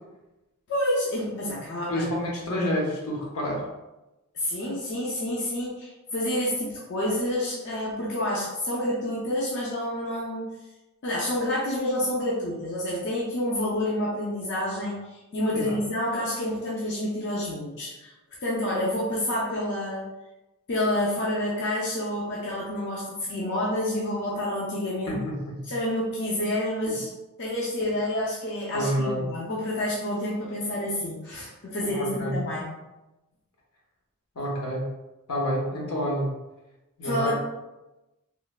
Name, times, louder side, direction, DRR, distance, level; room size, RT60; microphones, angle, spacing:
voice 1, 0.7-2.0 4.3-10.5 11.0-18.1 18.4-20.1 20.7-25.2 25.7-27.1 27.4-32.7 37.0-37.3, left 1 dB, 55° left, -5 dB, 0.4 m, -28 dB
voice 2, 1.9-3.6 15.5-15.8 25.1-25.5 26.9-27.0 28.7-29.3 31.8-32.3 34.3-34.9 35.3-36.3 37.0-37.3, equal, 80° left, -3 dB, 0.8 m, -28 dB
3.0 x 2.1 x 2.3 m, 1.0 s
head